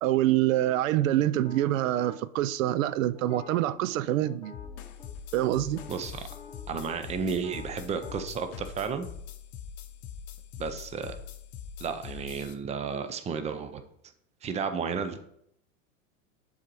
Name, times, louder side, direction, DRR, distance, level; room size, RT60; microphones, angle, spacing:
voice 1, 0.0-4.5 5.3-5.8, right 14 dB, 75° right, 0.5 m, -26 dB
sound 1, 1.4-2.2 3.1-5.1 5.4-5.5 5.8-8.2, left 4 dB, 10° left, 1.1 m, -49 dB
sound 2, 4.5-12.5, left 8 dB, 50° left, 0.8 m, -43 dB
voice 2, 5.9-6.2 6.7-9.1 10.6-11.2 11.8-13.8 14.4-15.2, right 6 dB, 15° right, 0.5 m, -32 dB
7.4 x 4.0 x 4.6 m
supercardioid pair, 115°, 40 cm